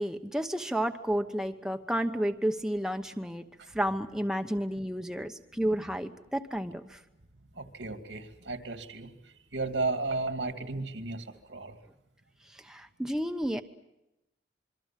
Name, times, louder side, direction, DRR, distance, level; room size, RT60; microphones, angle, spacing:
voice 1, 0.0-3.4 3.7-7.0 12.6-13.6, equal, 5° right, 5 dB, 0.9 m, -31 dB
voice 2, 7.5-11.8, right 3 dB, 90° right, 7 dB, 2.5 m, -34 dB
26.5 x 24.0 x 7.5 m, 0.91 s
head